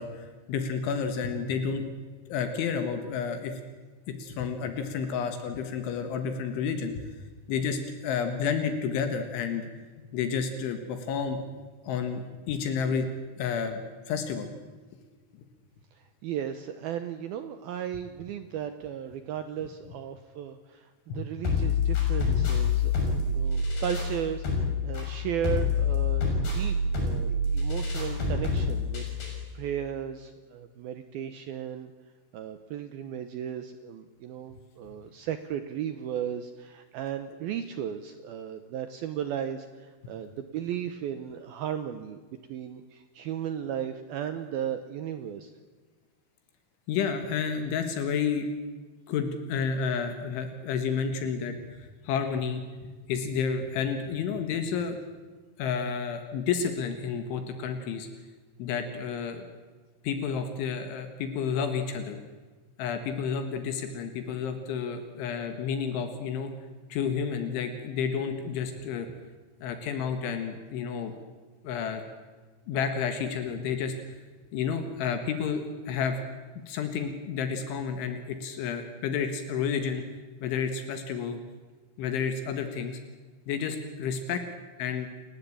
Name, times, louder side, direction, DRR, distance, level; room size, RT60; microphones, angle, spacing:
voice 1, 0.0-1.8 2.3-3.6 4.1-7.0 7.5-9.7 10.1-11.4 11.9-13.1 13.4-13.8 14.1-14.5 21.1-21.2 46.9-48.5 49.1-55.0 55.6-58.1 58.6-59.4 60.0-62.2 62.8-66.5 66.9-69.1 69.6-71.1 71.6-72.0 72.7-74.2 74.5-76.2 76.7-80.0 80.4-81.4 82.0-83.0 83.5-84.4 84.8-85.1, left 6 dB, 75° left, 7 dB, 3.9 m, -30 dB
voice 2, 15.9-31.9 32.3-42.2 42.5-45.5, right 9 dB, 80° right, 9 dB, 2.2 m, -35 dB
sound 1, 21.4-29.4, left 4 dB, 55° left, 8.3 m, -27 dB
29.5 x 15.5 x 8.7 m, 1.4 s
omnidirectional pair, 5.6 m